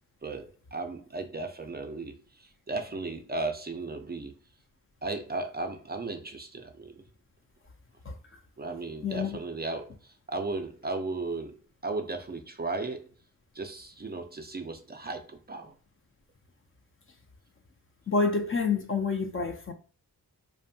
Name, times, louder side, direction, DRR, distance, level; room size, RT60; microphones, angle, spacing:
voice 1, 0.2-4.4 5.0-7.0 8.6-11.6 11.8-13.1 13.5-15.7, right 3 dB, 30° right, 0.4 m, -35 dB
voice 2, 9.0-9.4 18.1-19.7, left 4 dB, 35° left, 0.4 m, -28 dB
2.6 x 2.1 x 2.6 m
wide cardioid pair, 80°, 36 cm